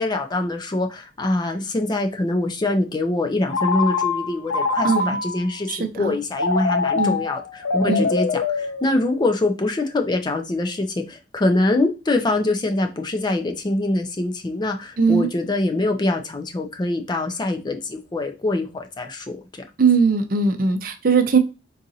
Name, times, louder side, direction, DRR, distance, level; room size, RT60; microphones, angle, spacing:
voice 1, 0.0-19.4, left 2 dB, 25° left, 5 dB, 0.4 m, -24 dB
Telephone, 3.5-5.5 6.3-9.4, left 4 dB, 85° left, 0.4 m, -24 dB
voice 2, 4.8-5.2 5.7-6.1 7.0-7.2 7.9-8.1 15.0-15.3 19.8-21.4, right 4 dB, 50° right, 7 dB, 0.5 m, -19 dB
3.9 x 2.5 x 2.7 m, 0.28 s
head